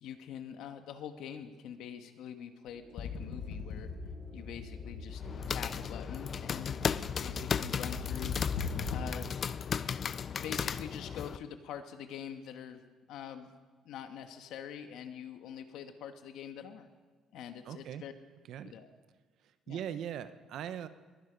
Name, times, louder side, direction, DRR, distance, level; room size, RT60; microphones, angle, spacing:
voice 1, 0.0-3.9 4.3-5.2 5.5-6.9 7.2-8.4 8.9-9.3 10.1-12.8 13.1-13.6 13.8-16.9 17.3-18.1 18.6-18.9 19.7-19.8, left 8 dB, 75° left, 8 dB, 1.3 m, -44 dB
sound 1, 2.6-10.8, right 3 dB, 30° right, 1.6 m, -59 dB
sound 2, 3.0-9.3, left 5 dB, 55° left, 1.4 m, -40 dB
sound 3, 5.1-11.4, left 7 dB, 35° left, 0.3 m, -35 dB
voice 2, 17.6-18.0 18.5-18.7 19.7-20.9, right 9 dB, 60° right, 12 dB, 0.8 m, -40 dB
21.5 x 11.5 x 5.2 m, 1.5 s
cardioid pair, 175°, 0 cm